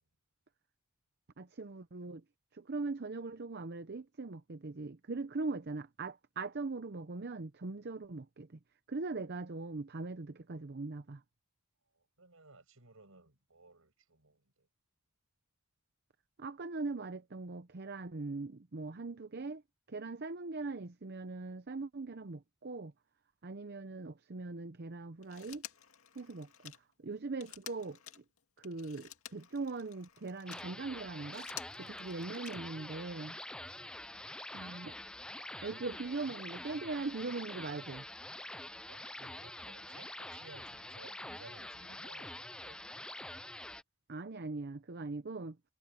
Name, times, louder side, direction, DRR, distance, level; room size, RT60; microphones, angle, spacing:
voice 1, 1.4-2.2 2.5-8.6 8.9-11.2 16.4-19.6 19.9-22.9 23.4-25.7 26.1-26.7 27.0-28.2 28.6-31.5 31.8-33.4 34.5-35.0 35.4-38.0 44.1-45.6, right 3 dB, 50° right, 0.7 m, -41 dB
voice 2, 11.9-14.7 22.0-22.2 32.3-32.5 33.6-34.0 35.6-36.7 38.7-42.8, right 3 dB, 75° right, 6.0 m, -59 dB
Telephone, 25.2-30.7 31.2-32.9 34.2-34.3, left 10 dB, 80° left, 2.3 m, -51 dB
sound 1, 30.5-43.8, left 1 dB, 5° left, 0.3 m, -46 dB
head